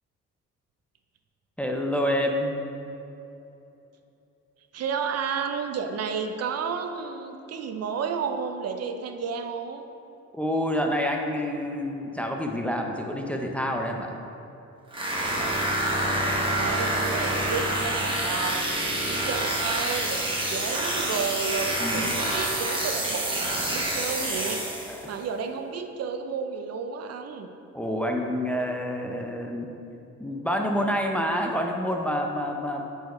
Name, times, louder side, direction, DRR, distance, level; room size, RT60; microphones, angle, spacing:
voice 1, 1.6-2.6 10.3-14.2 21.8-22.2 24.9-25.1 27.7-29.7 30.2-32.9, equal, 5° left, 2 dB, 0.6 m, -28 dB
voice 2, 4.7-9.8 16.3-18.7 19.0-27.5, right 6 dB, 55° right, 6 dB, 0.5 m, -32 dB
sound 1, 14.9-25.1, right 1 dB, 15° right, 1.3 m, -27 dB
8.9 x 4.7 x 3.1 m, 2.9 s
cardioid pair, 90°, 30 cm